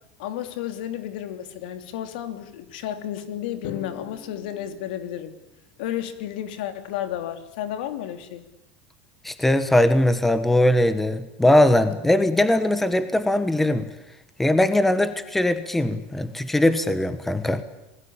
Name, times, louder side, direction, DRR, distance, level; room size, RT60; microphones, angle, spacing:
voice 1, 0.2-5.3 5.8-8.4, left 11 dB, 85° left, 9 dB, 3.2 m, -32 dB
Drum, 3.6-5.8, left 6 dB, 45° left, 3.6 m, -42 dB
voice 2, 9.2-13.9 14.4-17.6, left 1 dB, 5° left, 11 dB, 1.2 m, -20 dB
27.0 x 20.5 x 8.8 m, 0.92 s
cardioid pair, 175°, 5 cm